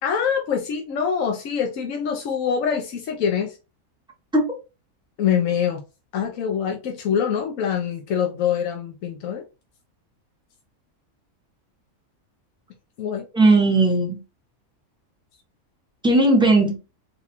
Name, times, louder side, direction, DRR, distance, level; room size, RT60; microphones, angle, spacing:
voice 1, 0.0-3.6 5.2-5.8 6.1-9.4 13.0-13.3, left 7 dB, 70° left, 2 dB, 1.1 m, -24 dB
voice 2, 13.3-14.2 16.0-16.8, right 2 dB, 5° right, -1 dB, 0.9 m, -17 dB
4.0 x 2.3 x 4.2 m, 0.30 s
omnidirectional pair, 1.4 m